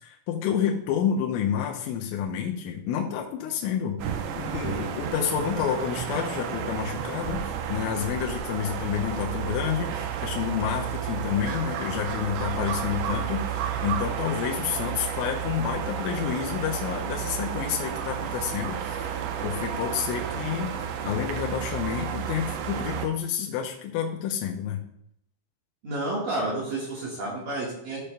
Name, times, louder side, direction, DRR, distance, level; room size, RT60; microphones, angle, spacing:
voice 1, 0.0-7.4 7.7-24.8, left 9 dB, 85° left, 0 dB, 3.2 m, -29 dB
sound 1, 4.0-23.1, right 9 dB, 85° right, 2.4 m, -32 dB
voice 2, 25.8-28.0, right 2 dB, 60° right, -5 dB, 2.4 m, -30 dB
13.0 x 6.9 x 2.2 m, 0.75 s
omnidirectional pair, 5.7 m